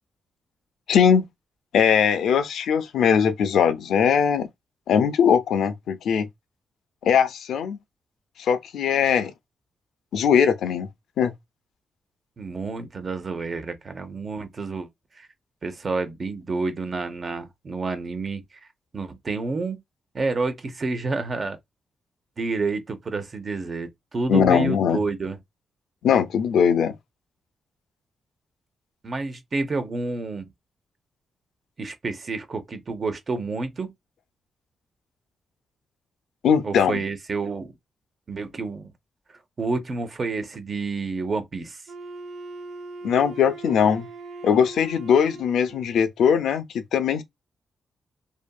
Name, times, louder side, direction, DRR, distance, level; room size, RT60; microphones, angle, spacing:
voice 1, 0.9-1.3 1.7-4.5 4.9-6.3 7.0-7.8 8.4-9.3 10.1-10.9 11.2-11.3 24.3-25.0 26.0-27.0 36.4-37.0 43.0-44.1 44.4-47.2, left 7 dB, 80° left, 0.4 m, -20 dB
voice 2, 12.4-14.9 15.1-15.3 15.6-18.6 18.9-19.8 20.1-21.6 22.4-25.4 29.0-30.5 31.8-33.9 36.6-37.7 38.3-38.9 39.6-41.8, right 3 dB, 35° right, 0.6 m, -29 dB
Wind instrument woodwind instrument, 41.9-46.0, right 3 dB, 80° right, 1.3 m, -40 dB
2.7 x 2.5 x 2.2 m
cardioid pair, 125°, 0 cm